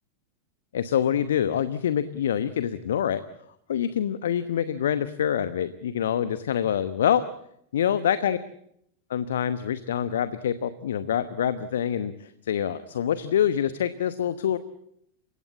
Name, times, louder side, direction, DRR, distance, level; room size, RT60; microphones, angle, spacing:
voice 1, 0.7-3.2 3.7-7.2 7.7-8.4 9.1-14.6, left 9 dB, 60° left, 14 dB, 1.0 m, -26 dB
29.0 x 17.0 x 8.5 m, 0.74 s
figure-of-eight pair, 90°, 0 cm